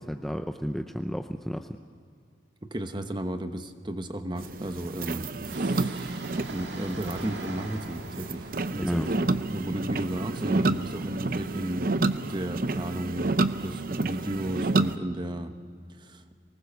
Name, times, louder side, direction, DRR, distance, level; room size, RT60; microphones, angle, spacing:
voice 1, 0.0-1.8 8.8-9.1, equal, ahead, 6 dB, 0.6 m, -32 dB
voice 2, 2.6-9.2 9.5-11.9 12.3-13.4 13.6-15.5 16.0-16.2, right 1 dB, 25° right, 8 dB, 1.0 m, -34 dB
sound 1, 4.4-15.0, right 2 dB, 50° right, 0.6 m, -29 dB
Train, 5.5-12.9 13.2-13.3, right 2 dB, 80° right, 2.2 m, -43 dB
23.5 x 20.0 x 6.9 m, 2.3 s
head